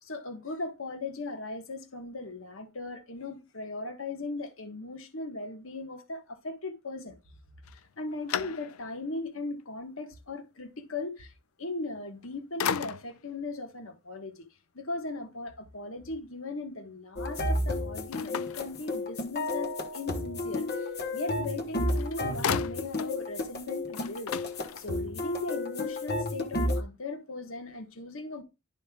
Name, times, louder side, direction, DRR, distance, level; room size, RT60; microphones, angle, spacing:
voice 1, 0.0-7.1 7.7-11.3 11.6-14.5 14.7-24.3 24.7-28.4, left 2 dB, 70° left, 1.4 m, -38 dB
sound 1, 7.6-9.1 9.6-9.7 11.9-12.3 12.6-13.3 18.1-19.4 21.5-21.6 21.9-23.2 23.5-23.6 23.9-25.2, left 8 dB, 90° left, 0.4 m, -36 dB
sound 2, 17.2-26.8, left 1 dB, 50° left, 1.2 m, -32 dB
11.5 x 5.2 x 2.3 m
head